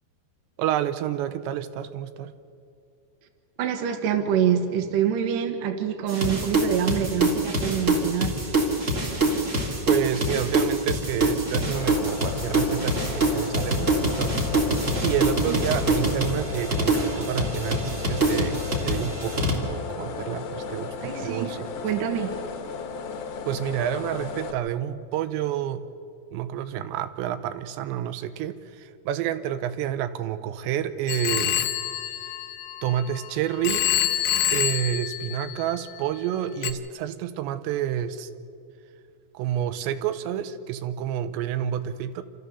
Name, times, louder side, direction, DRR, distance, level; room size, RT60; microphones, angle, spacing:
voice 1, 0.6-2.3 9.9-14.7 15.0-21.7 23.5-25.8 26.3-31.6 32.8-33.9 34.5-38.3 39.3-42.2, right 10 dB, 85° right, 10 dB, 3.0 m, -29 dB
voice 2, 3.6-8.3 15.5-15.6 21.0-21.5 21.8-22.3, right 8 dB, 65° right, 5 dB, 2.6 m, -25 dB
sound 1, 6.1-19.6, right 1 dB, 30° right, 1.5 m, -25 dB
sound 2, 11.7-24.5, left 5 dB, 65° left, 2.2 m, -35 dB
Telephone, 31.1-33.2 33.6-36.0 36.6-36.7, left 11 dB, 85° left, 2.8 m, -27 dB
28.0 x 13.5 x 6.9 m, 2.4 s
omnidirectional pair, 5.0 m